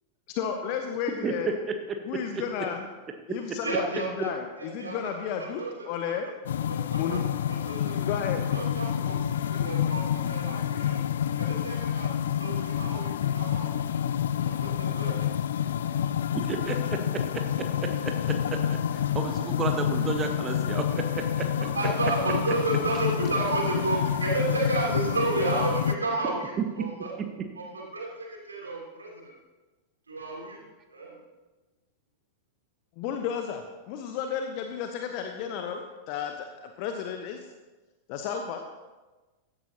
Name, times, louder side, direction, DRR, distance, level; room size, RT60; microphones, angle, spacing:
voice 1, 0.3-1.5 2.1-2.8 3.3-3.9 4.2-6.3 6.9-7.2 8.1-8.4 33.0-37.4 38.1-38.6, left 7 dB, 45° left, 5 dB, 0.9 m, -33 dB
voice 2, 1.2-1.7 2.1-2.4 16.3-17.0 17.8-21.5, right 5 dB, 25° right, 5 dB, 1.2 m, -32 dB
voice 3, 3.6-4.3 4.6-5.1 5.4-6.2 6.7-7.2 7.5-8.2 8.5-13.9 14.4-15.3 21.7-27.1 27.5-29.3 30.1-30.6 30.9-31.2, right 3 dB, 75° right, -2 dB, 3.1 m, -32 dB
sound 1, 6.5-26.0, left 9 dB, 60° left, 0.4 m, -28 dB
15.5 x 12.0 x 2.9 m, 1.2 s
figure-of-eight pair, 90°, 0 cm